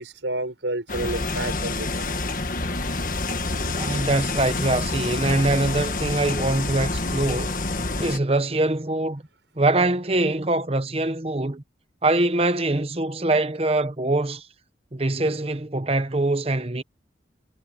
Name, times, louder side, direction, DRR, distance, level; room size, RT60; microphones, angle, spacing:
voice 1, 0.0-2.0, right 2 dB, 85° right, 6.3 m, -30 dB
sound 1, 0.9-8.2, left 3 dB, 45° left, 1.6 m, -27 dB
voice 2, 3.8-7.6 8.0-9.2 9.6-11.6 12.0-14.5 14.9-16.8, right 2 dB, 30° right, 0.9 m, -23 dB
head